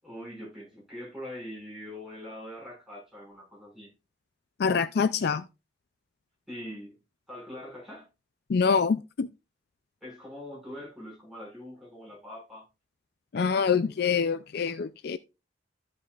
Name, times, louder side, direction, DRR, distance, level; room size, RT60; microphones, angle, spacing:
voice 1, 0.0-3.9 6.5-7.0 7.3-8.1 10.0-12.7, left 1 dB, ahead, 5.8 m, -43 dB
voice 2, 4.6-5.4 8.5-9.3 13.3-15.2, left 6 dB, 55° left, 0.4 m, -25 dB
14.0 x 5.4 x 2.4 m
head